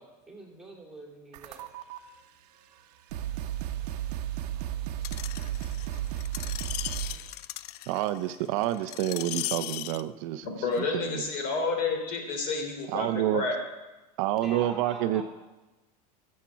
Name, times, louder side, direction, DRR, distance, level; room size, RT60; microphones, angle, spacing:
voice 1, 0.0-1.7 14.3-15.2, right 1 dB, ahead, -1 dB, 2.6 m, -45 dB
sound 1, 1.3-2.0 2.7-2.8 3.1-7.3, right 12 dB, 80° right, 0.9 m, -34 dB
Screech, 5.0-10.0 10.7-10.8, left 16 dB, 75° left, 0.4 m, -37 dB
voice 2, 7.9-11.2 12.9-13.4 14.2-15.2, right 13 dB, 55° right, 11 dB, 0.6 m, -29 dB
voice 3, 10.4-13.6, left 4 dB, 50° left, 3 dB, 3.1 m, -30 dB
13.5 x 7.5 x 5.7 m, 1.1 s
supercardioid pair, 140°, 20 cm